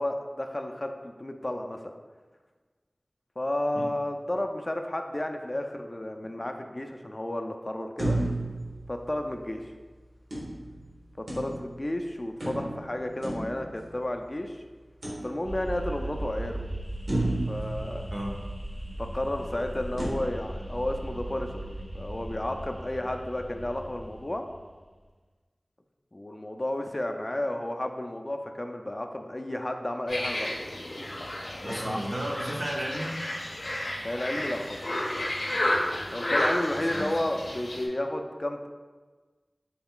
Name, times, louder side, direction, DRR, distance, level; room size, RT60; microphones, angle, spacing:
voice 1, 0.0-1.8 3.4-8.2 8.9-9.7 11.2-14.6 15.2-16.6 17.5-18.1 19.0-21.6 21.9-24.4 26.1-30.5 31.6-32.0 34.0-34.8 36.1-38.7, left 1 dB, 35° left, 4 dB, 0.3 m, -32 dB
sound 1, 8.0-9.6 10.3-11.9 12.4-14.3 15.0-15.9 16.4-16.5 17.1-18.8 20.0-20.1, right 1 dB, 80° right, 1.1 m, -33 dB
sound 2, 15.4-24.7, right 1 dB, 10° right, 0.6 m, -38 dB
sound 3, 30.1-37.9, left 1 dB, 85° left, 0.5 m, -32 dB
voice 2, 31.6-33.2 36.9-37.1, right 1 dB, 50° right, -1 dB, 0.6 m, -33 dB
4.0 x 2.3 x 3.7 m, 1.4 s
wide cardioid pair, 55°, 0 cm